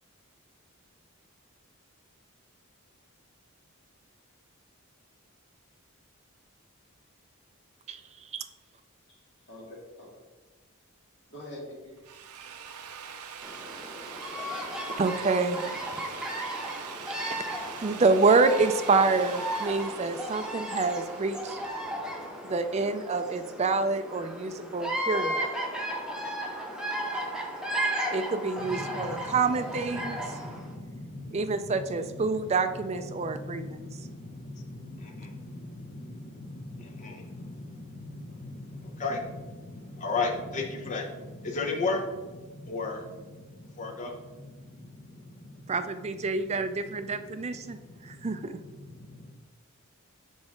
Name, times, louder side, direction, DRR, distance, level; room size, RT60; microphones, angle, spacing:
voice 1, 7.9-8.5 14.9-16.0 17.3-17.4 17.8-21.6 22.4-25.5 28.1-30.2 31.3-33.8 45.7-48.6, right 4 dB, 30° right, 9 dB, 0.3 m, -27 dB
voice 2, 9.5-10.2 11.3-11.9, left 1 dB, 55° left, -4 dB, 2.0 m, -44 dB
Drill, 11.9-21.7, right 7 dB, 85° right, 0.6 m, -43 dB
Bird vocalization bird call bird song, 13.4-30.7, equal, 5° right, 0.7 m, -35 dB
voice 3, 28.6-49.3, left 3 dB, 35° left, 1 dB, 0.8 m, -37 dB
6.2 x 4.8 x 3.8 m, 1.2 s
head